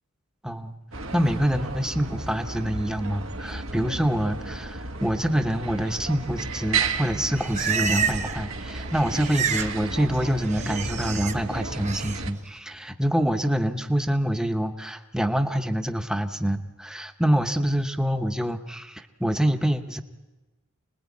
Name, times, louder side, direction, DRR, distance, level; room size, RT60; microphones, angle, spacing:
voice 1, 0.4-0.7 1.1-20.0, equal, 5° right, 6 dB, 0.9 m, -26 dB
sound 1, 0.9-12.3, right 3 dB, 80° right, 1.7 m, -33 dB
Livestock farm animals working animals, 7.0-8.4 8.7-9.7 10.0-11.3 11.8-12.2, right 6 dB, 35° right, 1.0 m, -29 dB
26.5 x 20.0 x 8.5 m, 1.1 s
head